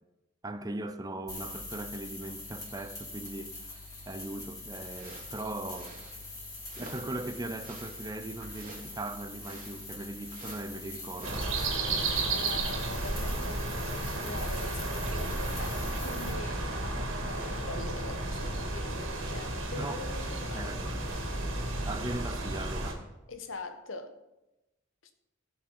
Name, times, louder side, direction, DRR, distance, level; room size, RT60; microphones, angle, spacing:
voice 1, 0.4-6.0 6.8-11.5 19.8-20.0 20.5-21.0 21.5-23.1, right 1 dB, 20° right, 0.6 m, -39 dB
sound 1, 1.3-16.3, left 2 dB, 20° left, 3.6 m, -44 dB
sound 2, 4.7-22.0, right 3 dB, 45° right, 2.6 m, -53 dB
sound 3, 11.2-22.9, right 2 dB, 90° right, 2.2 m, -33 dB
voice 2, 12.3-20.7 23.3-24.2, left 2 dB, 85° left, 1.2 m, -43 dB
15.5 x 5.6 x 5.5 m
head